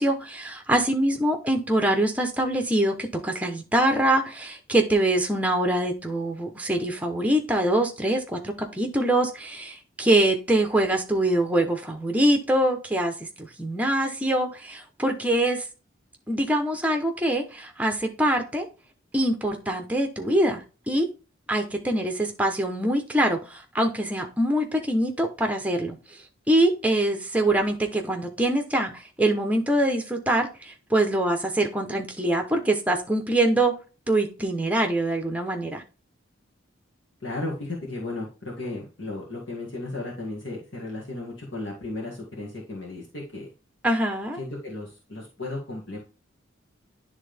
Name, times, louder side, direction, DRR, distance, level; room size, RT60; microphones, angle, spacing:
voice 1, 0.0-15.6 16.3-18.7 19.1-21.1 21.5-26.0 26.5-33.7 34.1-35.8 43.8-44.4, right 1 dB, 5° right, 4 dB, 0.9 m, -24 dB
voice 2, 37.2-43.5 44.4-46.0, left 2 dB, 65° left, -3 dB, 2.0 m, -35 dB
10.0 x 3.6 x 3.4 m, 0.32 s
head